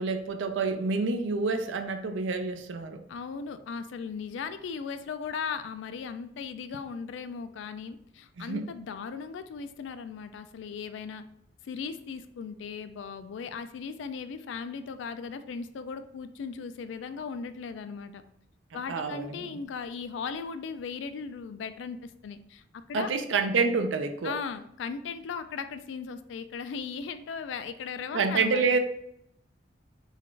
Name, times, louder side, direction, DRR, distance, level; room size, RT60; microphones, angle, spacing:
voice 1, 0.0-3.0 8.4-8.7 18.9-19.5 22.9-24.3 28.1-28.8, right 4 dB, 75° right, 7 dB, 0.4 m, -28 dB
voice 2, 3.1-11.2 11.6-18.2 18.7-22.6 22.9-23.1 24.2-28.7, left 5 dB, 70° left, 11 dB, 0.3 m, -37 dB
4.0 x 2.4 x 3.2 m, 0.75 s
head